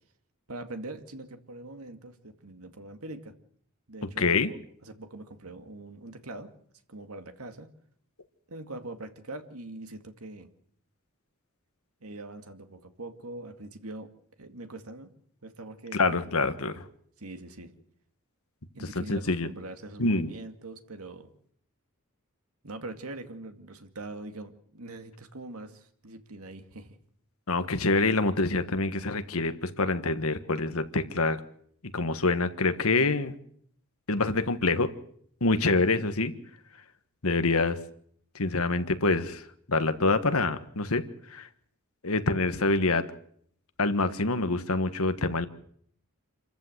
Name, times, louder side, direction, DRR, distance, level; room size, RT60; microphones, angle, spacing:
voice 1, 0.5-3.4 3.9-4.6 4.8-6.5 6.9-7.7 8.5-10.5 12.0-14.1 14.4-15.1 15.4-16.2 16.6-16.7 17.2-17.7 18.7-21.3 22.6-27.0, right 2 dB, 80° right, 7 dB, 2.2 m, -42 dB
voice 2, 4.2-4.5 15.9-16.8 18.9-19.5 20.0-20.3 27.5-31.4 31.9-33.3 34.1-34.9 35.4-36.3 37.2-37.8 38.3-39.4 39.7-41.0 41.3-41.5 42.0-43.1 43.8-45.5, left 3 dB, 75° left, 10 dB, 1.5 m, -26 dB
27.5 x 14.0 x 8.0 m, 0.65 s
head